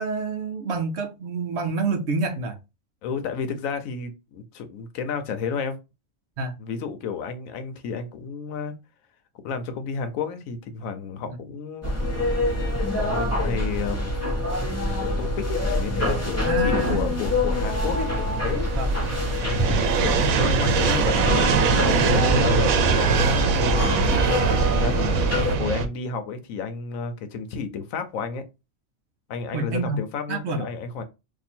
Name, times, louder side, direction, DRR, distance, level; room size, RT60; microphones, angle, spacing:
voice 1, 0.0-2.6 6.4-6.5 11.3-11.4 16.5-17.1 18.7-18.9 29.5-30.0 30.3-30.7, right 3 dB, 60° right, 0.8 m, -28 dB
voice 2, 3.0-5.8 6.6-8.7 9.4-11.9 12.9-14.4 15.0-18.7 19.4-28.4 29.3-31.0, left 5 dB, 80° left, 1.1 m, -31 dB
sound 1, 11.8-25.5, left 1 dB, 10° left, 1.0 m, -25 dB
sound 2, 14.9-25.9, right 5 dB, 85° right, 1.0 m, -23 dB
2.7 x 2.6 x 4.2 m
omnidirectional pair, 1.4 m